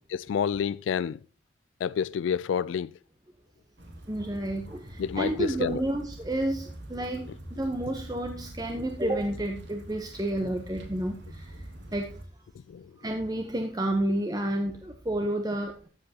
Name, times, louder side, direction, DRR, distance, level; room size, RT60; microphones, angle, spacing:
voice 1, 0.1-1.2 1.8-2.9 5.0-5.8 12.7-12.9, left 7 dB, 85° left, 0.3 m, -29 dB
sound 1, 3.8-12.2, right 1 dB, 70° right, 2.4 m, -44 dB
voice 2, 4.1-12.2 13.0-15.9, right 1 dB, 20° right, 0.8 m, -30 dB
13.5 x 7.7 x 2.8 m
head